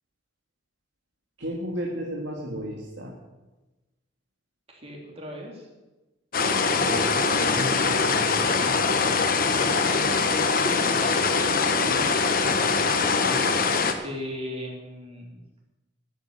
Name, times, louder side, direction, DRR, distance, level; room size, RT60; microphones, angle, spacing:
voice 1, 1.4-3.2 6.8-9.0 12.7-13.5, equal, 90° right, -1 dB, 2.0 m, -34 dB
voice 2, 4.7-5.7 9.8-12.9 14.0-15.4, equal, 35° right, -1 dB, 3.2 m, -38 dB
sound 1, 6.3-13.9, left 4 dB, 50° left, 1.1 m, -23 dB
11.0 x 8.2 x 8.9 m, 1.1 s
head